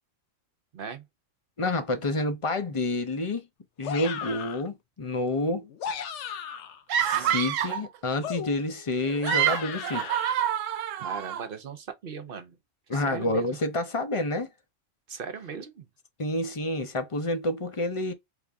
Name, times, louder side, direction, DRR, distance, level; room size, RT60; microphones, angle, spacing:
voice 1, 0.7-1.0 7.1-7.4 11.0-12.6 12.9-13.6 15.1-15.8, right 6 dB, 55° right, 0.8 m, -39 dB
voice 2, 1.6-3.4 3.8-5.7 7.0-10.1 12.9-14.5 16.2-18.1, left 2 dB, 35° left, 0.5 m, -28 dB
sound 1, 3.8-4.7 5.6-6.8 8.2-10.3, left 8 dB, 70° left, 0.9 m, -36 dB
sound 2, 6.9-7.9 9.0-11.4, right 10 dB, 80° right, 0.9 m, -27 dB
3.4 x 2.6 x 3.4 m
omnidirectional pair, 1.3 m